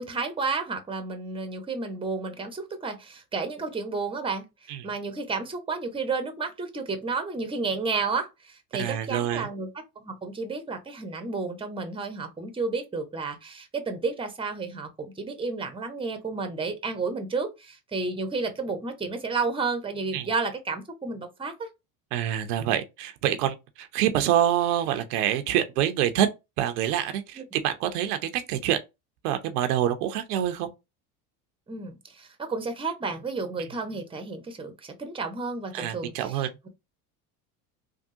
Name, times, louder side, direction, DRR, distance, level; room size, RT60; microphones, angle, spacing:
voice 1, 0.0-9.7 10.0-21.7 27.4-27.5 31.7-36.7, right 4 dB, 10° right, 0.8 m, -32 dB
voice 2, 8.8-9.5 20.1-20.3 22.1-26.3 26.6-28.8 29.2-30.7 35.7-36.5, right 11 dB, 80° right, 0.7 m, -26 dB
3.5 x 2.3 x 2.6 m
supercardioid pair, 90°, 46 cm